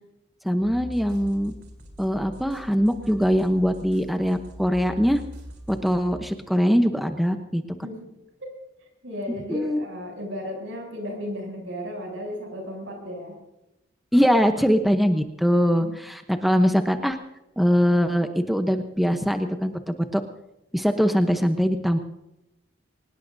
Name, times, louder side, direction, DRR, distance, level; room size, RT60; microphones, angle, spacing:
voice 1, 0.4-1.5 2.0-5.2 5.7-7.6 9.5-9.8 14.1-17.2 17.6-20.2 20.7-22.0, equal, ahead, 6 dB, 0.8 m, -22 dB
sound 1, 0.6-6.2, equal, 55° right, 3.7 m, -42 dB
voice 2, 7.8-8.1 8.4-8.5 9.0-13.4 15.8-15.9, left 1 dB, 80° right, 2 dB, 7.1 m, -34 dB
24.0 x 19.5 x 2.7 m, 0.91 s
head